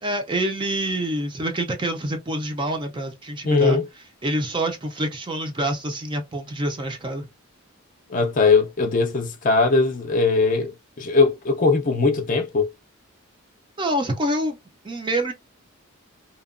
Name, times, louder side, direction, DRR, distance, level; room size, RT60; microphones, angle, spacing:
voice 1, 0.0-3.8 4.2-7.3 13.8-14.6 14.8-15.3, right 1 dB, 20° right, 0.4 m, -26 dB
voice 2, 3.4-3.8 8.1-12.7, left 4 dB, 35° left, 0.5 m, -20 dB
2.8 x 2.1 x 2.4 m
head